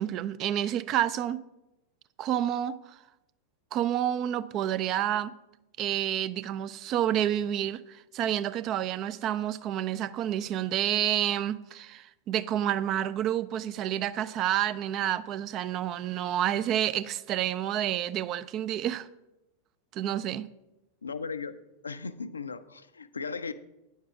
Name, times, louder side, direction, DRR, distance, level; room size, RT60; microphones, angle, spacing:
voice 1, 0.0-1.4 2.2-2.8 3.7-5.3 5.8-19.1 19.9-20.4, right 11 dB, 35° right, 0.4 m, -29 dB
voice 2, 21.0-21.6 21.8-23.5, left 5 dB, 75° left, 0.5 m, -36 dB
9.6 x 7.3 x 4.9 m
figure-of-eight pair, 90°, 0 cm